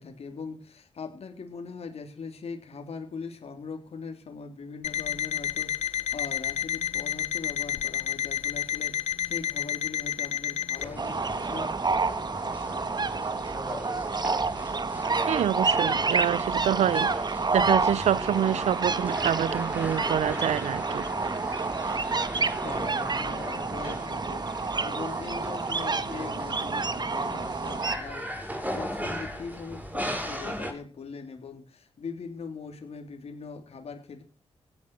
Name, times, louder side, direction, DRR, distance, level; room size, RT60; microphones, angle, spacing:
voice 1, 0.0-11.8 21.5-21.6 22.6-34.2, left 5 dB, 65° left, 3.4 m, -41 dB
Alarm, 4.8-10.9, left 9 dB, 85° left, 1.0 m, -30 dB
sound 1, 10.8-30.7, equal, 15° right, 7.6 m, -38 dB
sound 2, 11.0-28.0, right 4 dB, 40° right, 1.6 m, -29 dB
voice 2, 15.3-21.1, right 10 dB, 85° right, 0.7 m, -27 dB
16.5 x 10.5 x 6.1 m
cardioid pair, 65°, 11 cm